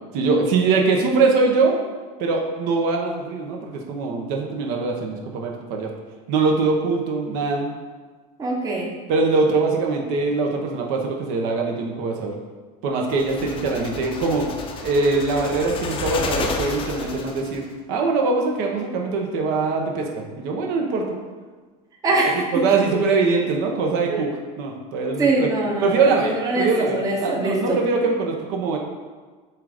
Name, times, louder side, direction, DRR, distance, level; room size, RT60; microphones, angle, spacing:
voice 1, 0.1-1.8 2.2-5.9 6.3-7.7 9.1-12.3 12.8-14.5 14.8-17.6 17.9-21.0 22.5-24.3 24.6-25.5 25.8-28.8, right 4 dB, 60° right, 1 dB, 0.9 m, -22 dB
voice 2, 8.4-8.9 22.0-22.4 24.1-24.2 25.2-27.8, right 2 dB, 20° right, -2 dB, 0.8 m, -23 dB
sound 1, 13.1-17.7, left 4 dB, 30° left, 0.6 m, -31 dB
7.5 x 2.6 x 4.9 m, 1.4 s
cardioid pair, 150°, 18 cm